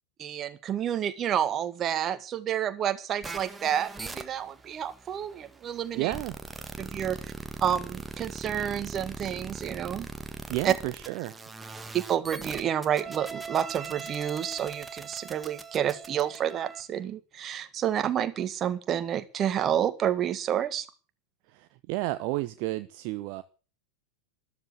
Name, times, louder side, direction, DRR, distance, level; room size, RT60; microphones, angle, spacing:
voice 1, 0.2-6.1 6.8-7.2 7.6-10.1 10.6-10.7 11.9-20.9, right 10 dB, 30° right, 1.8 m, -29 dB
sound 1, 3.2-16.8, right 4 dB, 10° right, 1.8 m, -41 dB
voice 2, 5.9-6.3 10.5-11.4 21.5-23.4, right 18 dB, 45° right, 1.0 m, -32 dB
13.5 x 13.0 x 8.2 m
figure-of-eight pair, 90°, 0 cm